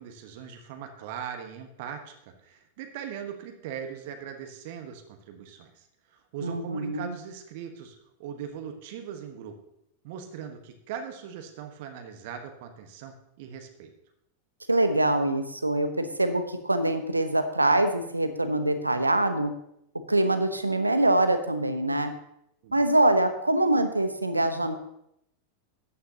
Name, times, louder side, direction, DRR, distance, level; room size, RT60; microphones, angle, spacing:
voice 1, 0.0-9.5 10.0-13.9 22.6-22.8, right 8 dB, 50° right, 5 dB, 1.2 m, -40 dB
voice 2, 6.4-7.1 14.7-19.5 20.1-22.1 22.7-24.8, right 1 dB, 85° right, 9 dB, 0.9 m, -24 dB
14.0 x 9.4 x 2.9 m, 0.78 s
figure-of-eight pair, 90°, 0 cm